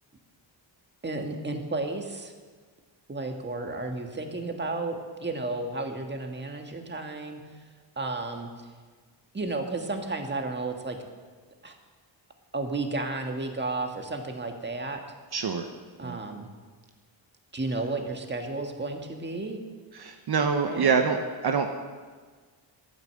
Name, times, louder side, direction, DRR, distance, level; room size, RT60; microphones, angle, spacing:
voice 1, 1.0-2.3 3.1-7.4 8.0-8.5 9.3-11.0 11.6-11.7 12.5-15.0 16.0-16.5 17.5-19.6 20.4-20.9, right 2 dB, 25° right, 4 dB, 1.6 m, -32 dB
voice 2, 15.3-15.7 16.0-16.2 19.9-21.2 21.4-21.7, right 5 dB, 55° right, 5 dB, 1.0 m, -25 dB
13.0 x 9.3 x 7.6 m, 1.5 s
cardioid pair, 110°, 46 cm